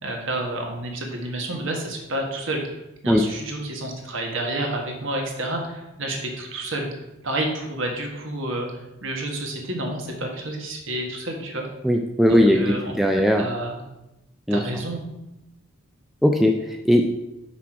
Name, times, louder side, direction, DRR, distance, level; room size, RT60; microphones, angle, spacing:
voice 1, 0.0-2.6 3.0-6.9 7.2-8.7 9.0-11.7 12.3-13.8 14.5-15.0, right 1 dB, 55° right, 1 dB, 1.4 m, -29 dB
voice 2, 11.8-13.5 14.5-14.6 16.2-17.1, equal, ahead, 2 dB, 0.3 m, -19 dB
6.0 x 5.9 x 4.7 m, 0.91 s
head